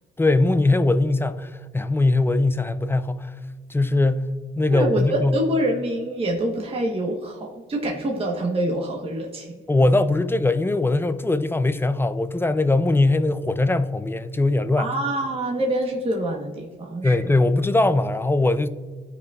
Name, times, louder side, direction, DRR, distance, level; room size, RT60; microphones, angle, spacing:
voice 1, 0.2-3.3 3.7-4.3 4.6-5.4 9.7-14.9 17.0-18.7, left 2 dB, 10° left, 0.4 m, -21 dB
voice 2, 4.7-9.6 14.8-17.3, right 1 dB, 30° right, 1.1 m, -26 dB
14.0 x 4.7 x 2.4 m
cardioid pair, 90°, 20 cm